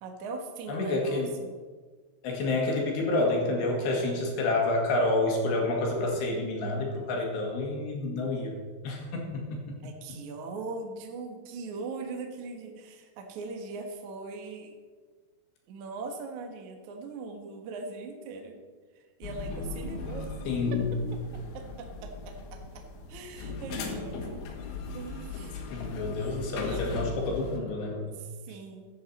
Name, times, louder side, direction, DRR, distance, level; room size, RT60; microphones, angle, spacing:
voice 1, 0.0-1.5 9.8-14.7 15.7-18.6 19.0-20.3 21.5-22.6 23.1-24.4 24.9-25.5 26.6-27.1 28.0-28.9, right 3 dB, 80° right, 3 dB, 1.7 m, -40 dB
voice 2, 0.7-1.3 2.2-8.6 8.8-9.8 20.5-20.9 25.7-28.2, left 2 dB, 65° left, 0 dB, 3.7 m, -29 dB
sound 1, 19.2-27.6, left 4 dB, 85° left, 4.3 m, -38 dB
15.0 x 9.9 x 4.2 m, 1.5 s
omnidirectional pair, 5.9 m